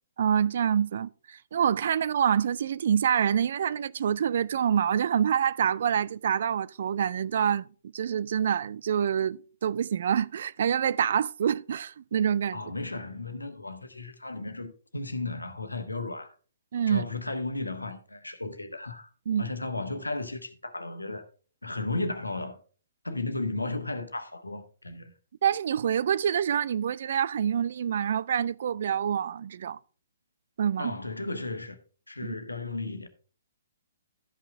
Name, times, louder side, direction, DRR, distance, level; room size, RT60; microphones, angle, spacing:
voice 1, 0.2-7.6 7.9-12.6 16.7-17.1 19.3-19.5 25.4-29.8 30.6-30.9 32.2-32.4, right 8 dB, 50° right, 0.3 m, -26 dB
voice 2, 12.5-16.3 16.9-19.1 19.4-21.2 21.6-22.6 23.0-25.1 30.8-31.8 32.1-33.1, left 2 dB, 80° left, 1.2 m, -34 dB
12.5 x 5.7 x 3.6 m
figure-of-eight pair, 125°, 0 cm